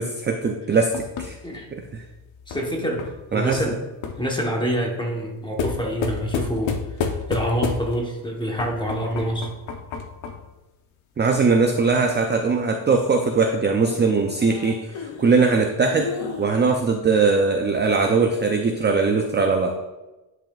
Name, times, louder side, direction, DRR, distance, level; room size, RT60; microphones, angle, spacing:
voice 1, 0.0-1.4 1.7-2.0 3.3-3.7 11.2-19.8, right 4 dB, 25° right, 3 dB, 0.4 m, -21 dB
sound 1, 0.9-4.3 5.6-8.1 8.6-10.5 12.6-16.5, left 6 dB, 75° left, 0.9 m, -32 dB
voice 2, 2.5-3.8 4.2-6.8 7.3-9.5, equal, 10° left, 0 dB, 1.0 m, -26 dB
10.0 x 5.6 x 2.3 m, 1.1 s
cardioid pair, 145°, 47 cm